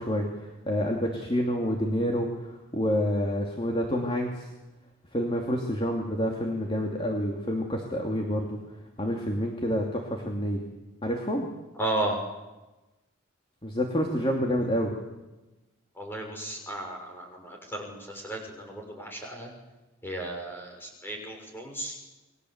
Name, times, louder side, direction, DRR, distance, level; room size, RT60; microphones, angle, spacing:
voice 1, 0.0-4.5 5.1-8.6 9.0-10.6 11.0-11.5 13.6-15.0, equal, 25° left, 1 dB, 2.9 m, -28 dB
voice 2, 11.8-12.2 16.0-19.5 20.0-21.9, right 1 dB, 10° left, 1 dB, 6.2 m, -34 dB
29.5 x 22.5 x 8.2 m, 1.1 s
head